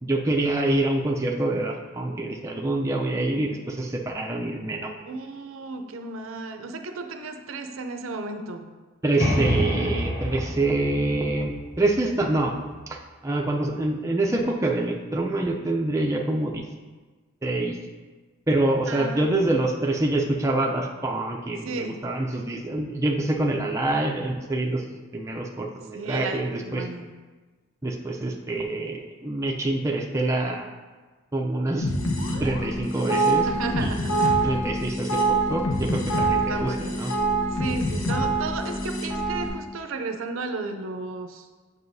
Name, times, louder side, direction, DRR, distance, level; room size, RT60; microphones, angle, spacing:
voice 1, 0.0-4.9 9.0-12.5 12.9-13.0 13.2-16.6 17.4-17.8 18.5-26.8 27.8-30.7 31.3-31.9 32.4-33.5 33.8-33.9 34.4-37.1, right 2 dB, 15° right, 0 dB, 0.4 m, -26 dB
voice 2, 5.0-8.7 18.9-19.5 21.6-22.0 25.9-27.1 33.3-34.2 36.3-37.0 37.5-41.5, right 3 dB, 80° right, 7 dB, 0.5 m, -34 dB
sound 1, 9.2-12.9, equal, 45° left, 1.7 m, -28 dB
sound 2, 31.8-39.5, right 2 dB, 75° left, 1.0 m, -25 dB
7.7 x 5.5 x 2.7 m, 1.3 s
head